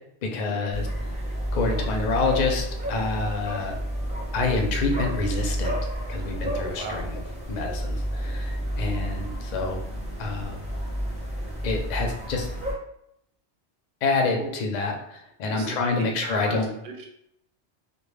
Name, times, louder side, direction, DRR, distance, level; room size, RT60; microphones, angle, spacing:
voice 1, 0.2-0.9 1.5-3.8 4.3-5.7 6.1-7.2 7.5-9.8 10.2-10.6 11.6-12.5 14.0-16.7, left 3 dB, 60° left, 2 dB, 0.5 m, -27 dB
sound 1, 0.7-12.7, equal, 5° right, 0.7 m, -30 dB
voice 2, 6.5-7.1 14.3-14.5 15.5-17.1, right 4 dB, 65° right, 1 dB, 0.8 m, -37 dB
2.2 x 2.1 x 3.1 m, 0.76 s
omnidirectional pair, 1.1 m